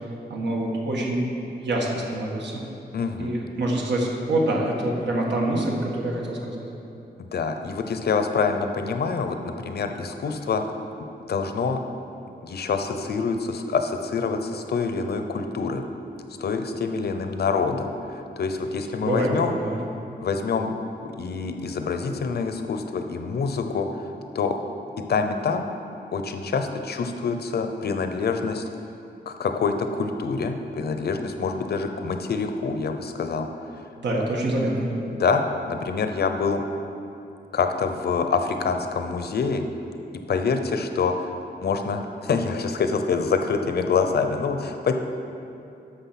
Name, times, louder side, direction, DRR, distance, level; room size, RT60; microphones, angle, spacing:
voice 1, 0.3-1.3 1.6-2.6 3.2-6.6 19.0-19.8 34.0-34.9, right 1 dB, 85° right, -2 dB, 1.6 m, -25 dB
voice 2, 2.9-3.3 7.3-10.6 11.3-11.8 12.4-15.8 16.4-19.5 20.2-20.7 21.0-24.0 24.3-24.5 25.1-25.7 26.1-28.6 29.3-33.5 35.1-36.6 37.5-39.6 40.3-41.3 41.6-44.9, left 5 dB, 65° left, 6 dB, 0.7 m, -26 dB
11.5 x 6.6 x 5.9 m, 2.7 s
wide cardioid pair, 180°, 18 cm